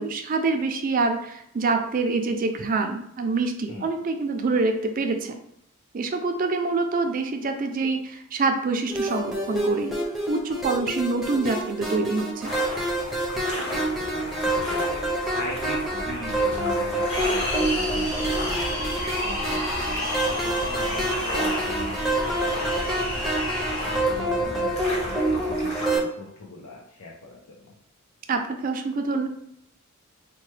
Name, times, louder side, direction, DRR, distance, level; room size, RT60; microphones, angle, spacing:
voice 1, 0.0-5.3 5.9-9.9 10.3-12.5 28.3-29.3, right 3 dB, 40° right, 5 dB, 0.4 m, -26 dB
sound 1, 8.9-26.0, right 1 dB, ahead, 0.6 m, -27 dB
sound 2, 12.4-26.0, left 1 dB, 30° left, 1.0 m, -35 dB
voice 2, 13.5-18.9 19.2-22.8 23.7-27.7, left 2 dB, 85° left, -1 dB, 0.6 m, -40 dB
sound 3, 17.1-24.0, left 1 dB, 65° left, 1.3 m, -30 dB
4.6 x 2.2 x 3.1 m, 0.72 s
head